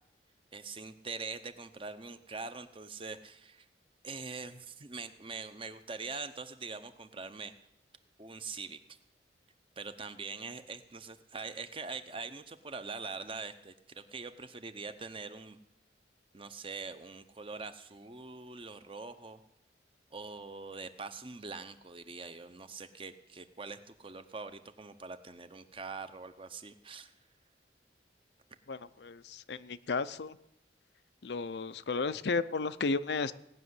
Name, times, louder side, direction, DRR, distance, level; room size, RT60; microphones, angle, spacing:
voice 1, 0.5-3.7 4.0-7.5 8.2-8.8 9.8-15.6 16.3-19.4 20.1-27.1, right 4 dB, 30° right, 10 dB, 0.8 m, -43 dB
voice 2, 28.7-30.4 31.2-33.3, left 4 dB, 70° left, 14 dB, 0.5 m, -33 dB
18.0 x 6.3 x 9.6 m, 0.85 s
head